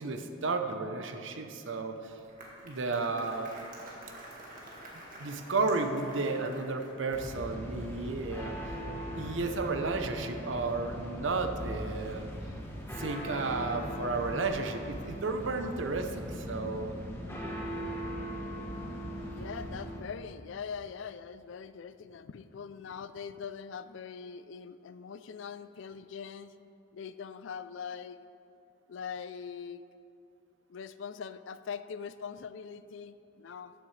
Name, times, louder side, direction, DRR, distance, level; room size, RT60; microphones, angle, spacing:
voice 1, 0.0-2.1 2.6-3.5 5.2-8.5 9.1-12.3 13.0-16.9, right 3 dB, 70° right, 6 dB, 0.7 m, -33 dB
Applause, 2.0-7.4, right 1 dB, 45° right, 1.8 m, -49 dB
sound 1, 7.1-20.0, equal, 10° left, 1.3 m, -39 dB
voice 2, 19.4-26.5 26.9-28.2 28.9-29.8 30.7-33.7, left 6 dB, 65° left, 13 dB, 0.4 m, -42 dB
14.0 x 9.3 x 3.3 m, 2.7 s
head